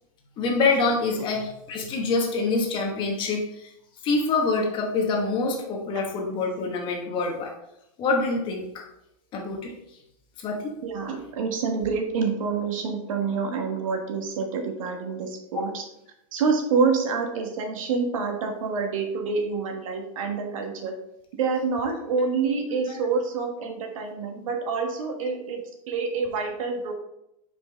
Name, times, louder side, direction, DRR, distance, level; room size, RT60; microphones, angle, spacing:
voice 1, 0.4-3.7 4.0-7.5 8.0-8.8 9.3-9.7 10.4-10.7 15.5-15.6, left 3 dB, 30° left, 2 dB, 1.1 m, -26 dB
voice 2, 10.8-15.8 16.3-20.9 21.4-25.6 25.9-26.9, right 5 dB, 70° right, 4 dB, 1.4 m, -27 dB
5.8 x 5.1 x 3.4 m, 0.82 s
supercardioid pair, 150°, 18 cm